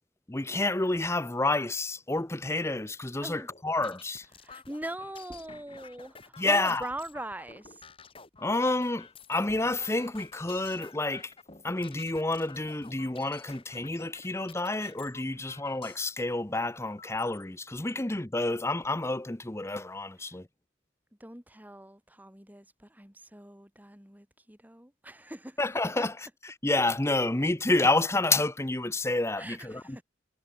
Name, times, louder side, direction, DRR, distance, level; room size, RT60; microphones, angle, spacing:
voice 1, 0.3-4.3 6.4-6.9 8.4-11.3 11.6-20.5 25.6-30.0, left 2 dB, 15° left, 0.8 m, -29 dB
sound 1, 3.4-16.2 16.9-17.4 18.0-18.1 18.4-19.0, left 5 dB, 30° left, 2.5 m, -51 dB
voice 2, 4.4-7.9 21.2-25.6 26.0-26.1 29.4-30.0, right 1 dB, 10° right, 3.3 m, -42 dB
head